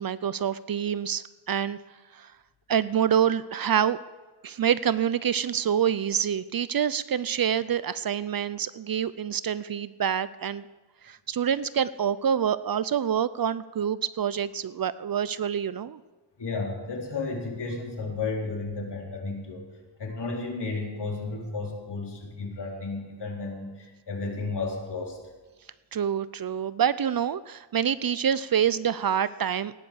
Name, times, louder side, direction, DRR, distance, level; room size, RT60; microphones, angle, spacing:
voice 1, 0.0-1.8 2.1-2.3 2.7-4.0 4.4-10.6 11.0-16.0 25.9-29.7, right 8 dB, 50° right, 17 dB, 0.6 m, -26 dB
voice 2, 16.4-19.6 20.0-25.2, left 3 dB, 60° left, -1 dB, 4.2 m, -33 dB
17.5 x 10.0 x 7.0 m, 1.2 s
cardioid pair, 80°, 46 cm